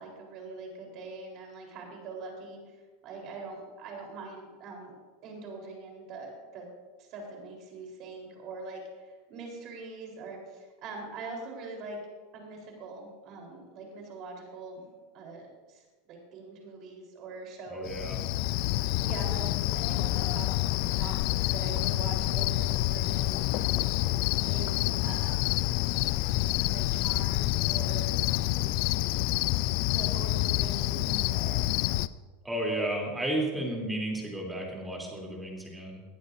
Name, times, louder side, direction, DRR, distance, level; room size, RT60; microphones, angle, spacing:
voice 1, 0.0-2.8 3.0-4.9 5.2-6.7 7.0-12.0 12.3-17.9 19.0-20.5 20.9-23.9 24.4-25.4 26.6-28.7 29.9-31.7, right 3 dB, 45° right, 0 dB, 4.1 m, -43 dB
voice 2, 17.7-18.2 32.4-36.0, right 1 dB, 10° right, -1 dB, 3.3 m, -33 dB
Cricket, 17.8-32.1, left 16 dB, 60° left, 0.4 m, -28 dB
18.5 x 12.0 x 2.7 m, 1.3 s
supercardioid pair, 125°, 0 cm